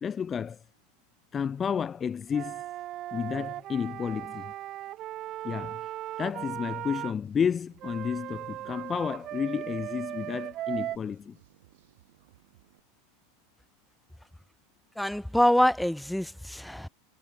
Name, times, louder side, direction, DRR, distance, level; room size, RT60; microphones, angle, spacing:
voice 1, 0.0-0.6 1.3-2.6 3.1-4.5 5.4-5.9 6.2-11.3, left 7 dB, 25° left, 0.4 m, -31 dB
Wind instrument woodwind instrument, 2.3-7.1 7.8-11.0, right 14 dB, 45° right, 0.5 m, -37 dB
sound 1, 7.2-12.8, right 17 dB, 75° right, 6.5 m, -62 dB
voice 2, 15.0-16.9, left 1 dB, ahead, 1.0 m, -25 dB
hypercardioid pair, 110°, 0 cm